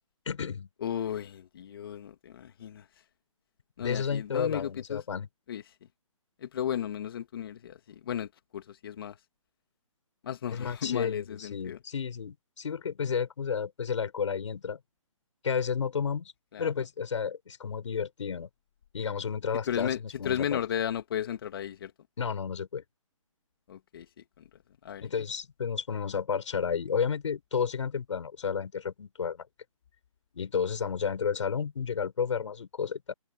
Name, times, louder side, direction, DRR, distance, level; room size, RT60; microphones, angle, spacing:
voice 1, 0.3-0.7 3.8-5.3 10.5-14.8 15.4-16.3 16.6-18.5 18.9-20.6 22.2-22.8 25.0-29.5 30.3-33.1, left 6 dB, 60° left, 7.1 m, -32 dB
voice 2, 0.8-2.8 3.8-5.0 5.5-5.6 6.4-9.2 10.2-11.8 16.5-16.7 19.7-20.0 20.2-21.9 23.7-24.2 24.8-25.1, left 9 dB, 40° left, 2.3 m, -34 dB
hypercardioid pair, 165°, 18 cm